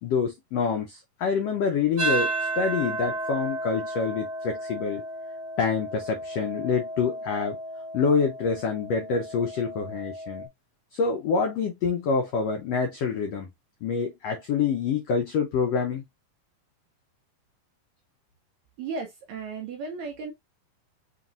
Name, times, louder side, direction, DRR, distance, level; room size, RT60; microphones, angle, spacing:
voice 1, 0.0-5.0 5.6-7.6 7.9-10.5 10.9-13.5 13.8-16.0, left 5 dB, 85° left, 1.4 m, -26 dB
sound 1, 2.0-10.5, right 2 dB, 50° right, 1.2 m, -33 dB
voice 2, 18.8-20.3, right 4 dB, 75° right, 1.8 m, -35 dB
5.7 x 3.0 x 2.4 m
omnidirectional pair, 4.0 m